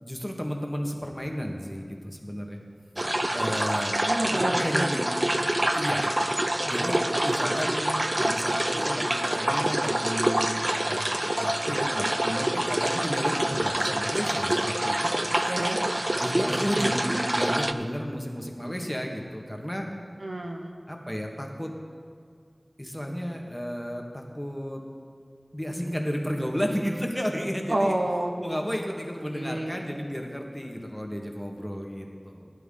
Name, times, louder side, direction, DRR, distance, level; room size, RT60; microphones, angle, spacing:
voice 1, 0.0-2.6 3.0-3.9 4.3-5.1 5.7-15.1 16.2-19.9 20.9-21.7 22.8-24.8 25.5-28.0 28.4-32.5, equal, 10° left, 1 dB, 1.6 m, -33 dB
sound 1, 3.0-17.7, right 1 dB, 35° right, 0.5 m, -26 dB
voice 2, 4.1-4.9 7.4-7.7 15.5-15.8 20.2-20.8 27.7-28.3 28.6-28.7 29.3-29.7, right 1 dB, 85° right, 1 dB, 1.4 m, -29 dB
17.0 x 10.5 x 3.8 m, 2.2 s
wide cardioid pair, 50°, 0 cm